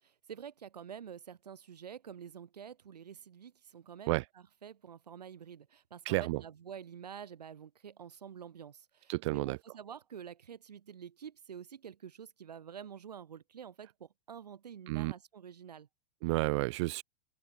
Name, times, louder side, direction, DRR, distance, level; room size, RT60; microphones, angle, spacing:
voice 1, 0.0-15.9, right 8 dB, 80° right, 0.9 m, -48 dB
voice 2, 6.1-6.4 9.1-9.6 14.9-15.1 16.2-17.0, right 22 dB, 45° right, 0.4 m, -31 dB
figure-of-eight pair, 100°, 20 cm